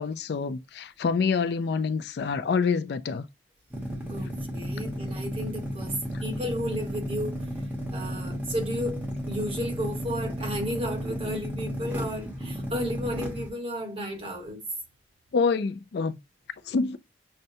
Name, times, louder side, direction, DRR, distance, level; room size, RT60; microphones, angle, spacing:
voice 1, 0.0-3.2 15.3-16.2 16.7-17.0, left 5 dB, 60° left, 0.4 m, -26 dB
sound 1, 3.7-13.5, equal, 10° right, 0.9 m, -33 dB
voice 2, 4.1-5.9 6.2-7.4 7.9-14.6 16.6-16.7, equal, 30° right, 1.3 m, -33 dB
6.5 x 2.2 x 2.7 m
head